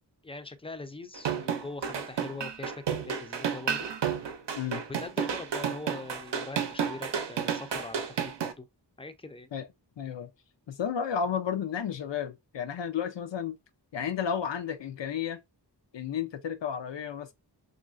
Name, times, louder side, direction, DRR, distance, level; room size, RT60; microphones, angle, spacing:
voice 1, 0.2-3.9 4.9-8.7 9.0-9.5, left 3 dB, 15° left, 0.4 m, -42 dB
sound 1, 1.1-8.5, right 7 dB, 75° right, 0.6 m, -31 dB
voice 2, 10.0-10.3 10.7-13.6 13.9-15.4 15.9-17.3, left 7 dB, 85° left, 0.5 m, -32 dB
3.0 x 2.5 x 2.5 m
wide cardioid pair, 70°, 42 cm